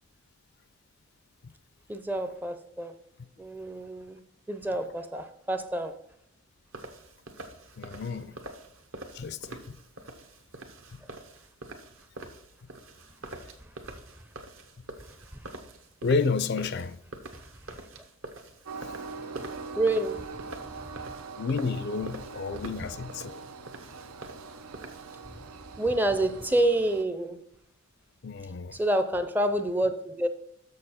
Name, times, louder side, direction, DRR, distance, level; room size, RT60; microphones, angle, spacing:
voice 1, 1.9-2.9 3.4-4.2 4.5-6.0 19.8-20.4 25.8-27.4 28.7-30.3, right 1 dB, 10° right, 0.4 m, -28 dB
sound 1, 6.7-25.2, right 2 dB, 65° right, 1.0 m, -45 dB
voice 2, 7.8-8.4 9.1-9.8 16.0-17.0 21.4-23.5 28.2-28.8, left 4 dB, 50° left, 0.4 m, -30 dB
Train, 18.7-27.0, right 4 dB, 90° right, 0.6 m, -43 dB
6.8 x 6.7 x 4.2 m
head